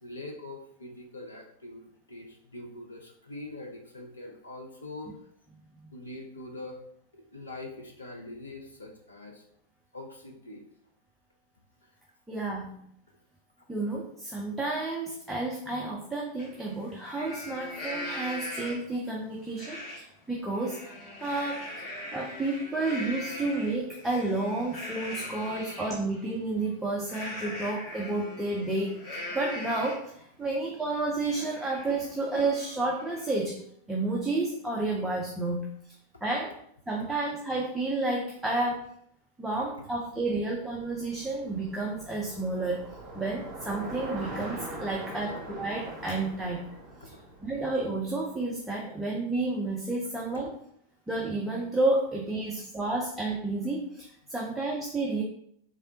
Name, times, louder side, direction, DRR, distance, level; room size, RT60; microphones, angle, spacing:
voice 1, 0.0-5.2 5.9-6.8 7.1-9.4 9.9-10.7 11.8-11.9 47.0-47.2, left 2 dB, 80° left, 1 dB, 0.5 m, -43 dB
voice 2, 12.3-12.8 13.7-20.9 21.2-30.1 30.4-33.6 33.9-35.7 36.2-36.5 36.9-38.8 39.4-42.8 43.1-46.6 47.0-47.1 47.4-50.5 51.1-55.2, right 2 dB, 5° right, -2 dB, 0.6 m, -31 dB
Livestock farm animals working animals, 16.4-16.5 16.9-19.0 19.6-20.0 20.4-26.0 27.1-30.1 30.6-30.7 31.0-33.4, left 1 dB, 35° left, 1.2 m, -40 dB
Bicycle, 40.1-48.4, right 1 dB, 30° right, 1.5 m, -42 dB
3.7 x 3.3 x 2.7 m, 0.68 s
figure-of-eight pair, 90°, 0 cm